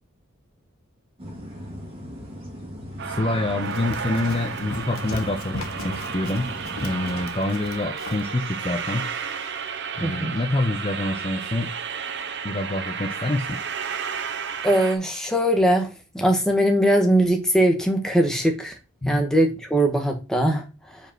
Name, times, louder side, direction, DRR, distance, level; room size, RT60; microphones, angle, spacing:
sound 1, 1.2-7.2, equal, 25° right, 2.5 m, -38 dB
voice 1, 3.0-6.5 6.8-9.1 10.0-11.7 12.4-13.6 19.0-19.2, left 2 dB, 25° left, 6 dB, 0.6 m, -26 dB
sound 2, 3.0-15.0, right 6 dB, 55° right, 0.8 m, -32 dB
Run, 3.6-8.3, left 3 dB, 70° left, 1.1 m, -38 dB
voice 2, 10.0-10.3 14.6-18.7 19.0-21.0, right 1 dB, 5° left, 3 dB, 1.2 m, -21 dB
5.1 x 4.9 x 6.0 m, 0.29 s
head